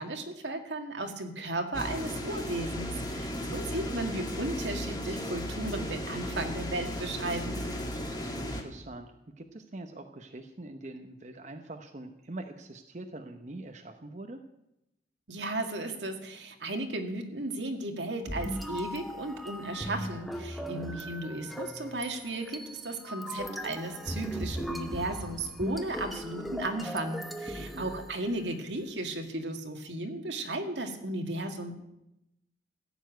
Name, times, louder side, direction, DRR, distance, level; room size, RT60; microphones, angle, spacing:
voice 1, 0.0-7.6 15.3-31.7, right 2 dB, 80° right, 4 dB, 2.0 m, -35 dB
sound 1, 1.7-8.6, left 1 dB, 20° left, 1.9 m, -35 dB
voice 2, 3.1-3.6 7.9-9.1 9.4-14.4 20.7-20.9 27.6-27.9, right 2 dB, 40° right, 5 dB, 0.8 m, -44 dB
sound 2, 18.3-28.6, equal, ahead, 0.8 m, -38 dB
15.0 x 7.1 x 9.2 m, 0.87 s
head